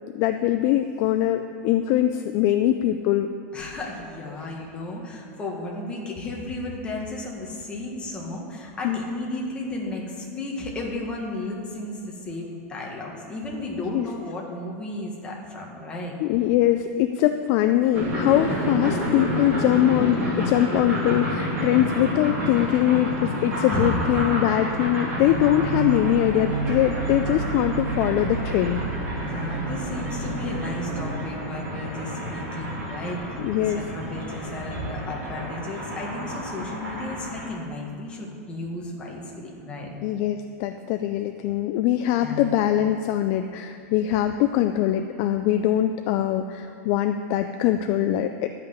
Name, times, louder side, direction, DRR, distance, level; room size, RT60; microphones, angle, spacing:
voice 1, 0.1-3.3 4.3-4.5 8.8-9.0 13.9-14.1 16.2-28.8 33.0-33.8 40.0-48.5, left 12 dB, 40° left, 7 dB, 0.4 m, -22 dB
voice 2, 3.5-16.1 18.6-18.8 23.7-24.5 29.2-39.9 42.1-42.4, left 2 dB, 15° left, -2 dB, 1.6 m, -34 dB
sound 1, 17.9-37.5, equal, 25° right, 2.6 m, -30 dB
sound 2, 25.2-31.1, right 4 dB, 85° right, 2.4 m, -31 dB
11.5 x 5.7 x 8.1 m, 2.5 s
supercardioid pair, 165°, 8 cm